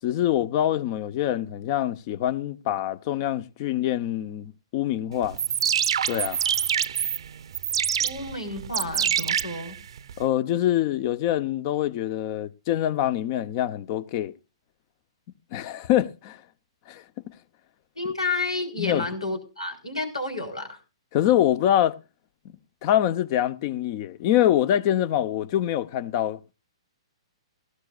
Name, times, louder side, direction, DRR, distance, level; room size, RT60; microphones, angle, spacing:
voice 1, 0.0-5.4 6.1-6.4 10.2-14.3 15.5-16.4 16.9-17.0 18.8-19.0 21.1-22.0 22.8-26.5, left 12 dB, 40° left, 0.9 m, -25 dB
sound 1, 5.2-10.2, right 9 dB, 65° right, 0.7 m, -26 dB
voice 2, 8.0-9.8 18.0-20.8, left 3 dB, 90° left, 4.2 m, -31 dB
18.0 x 15.0 x 2.5 m
hypercardioid pair, 120°, 3 cm